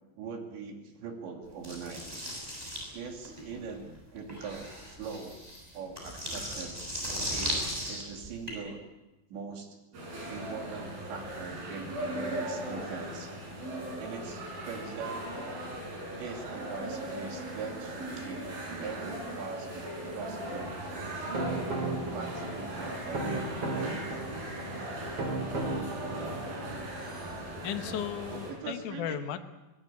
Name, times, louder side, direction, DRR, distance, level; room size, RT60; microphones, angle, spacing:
voice 1, 0.2-2.1 2.9-5.4 5.7-6.8 7.3-8.8 9.3-13.3 14.0-15.6 16.2-19.9 20.1-20.8 22.1-24.0 28.3-29.2, right 5 dB, 70° right, 3 dB, 4.8 m, -42 dB
sound 1, 1.6-8.5, equal, 10° right, 6.6 m, -37 dB
sound 2, 9.9-28.5, right 1 dB, 50° right, 7.4 m, -38 dB
sound 3, 20.9-26.7, right 2 dB, 30° right, 3.2 m, -35 dB
voice 2, 27.6-29.4, left 10 dB, 75° left, 7 dB, 1.8 m, -35 dB
23.0 x 19.5 x 8.6 m, 1.0 s
omnidirectional pair, 5.5 m